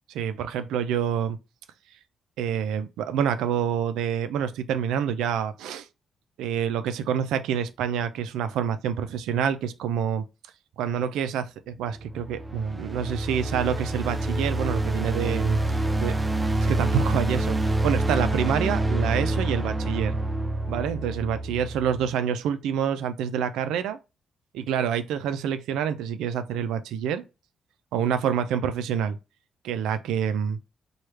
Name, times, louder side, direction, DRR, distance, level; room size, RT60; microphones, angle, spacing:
voice 1, 0.1-1.4 2.4-5.9 6.4-10.2 10.8-15.6 16.0-16.1 16.6-20.2 20.7-24.0 24.5-27.2 27.9-29.2 29.6-30.6, right 8 dB, 85° right, 0.4 m, -27 dB
sound 1, 11.9-22.1, right 2 dB, 20° right, 0.4 m, -27 dB
3.1 x 2.3 x 3.2 m
supercardioid pair, 55°, 0 cm